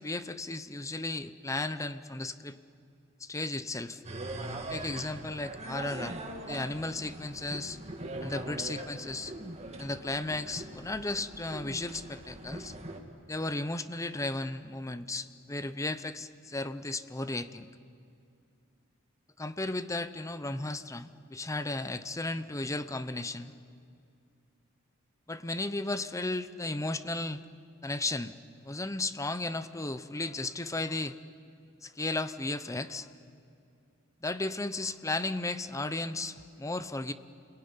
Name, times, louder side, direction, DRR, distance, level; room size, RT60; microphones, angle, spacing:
voice 1, 0.0-2.6 3.2-4.0 4.7-6.2 6.5-7.8 8.2-9.3 9.8-12.7 13.3-17.7 19.4-23.5 25.3-27.4 27.8-28.3 28.6-31.2 31.8-33.1 34.2-37.1, left 2 dB, 15° left, 12 dB, 0.8 m, -35 dB
sound 1, 4.0-13.0, right 1 dB, 30° right, 2.2 m, -41 dB
28.5 x 21.5 x 9.8 m, 2.5 s
head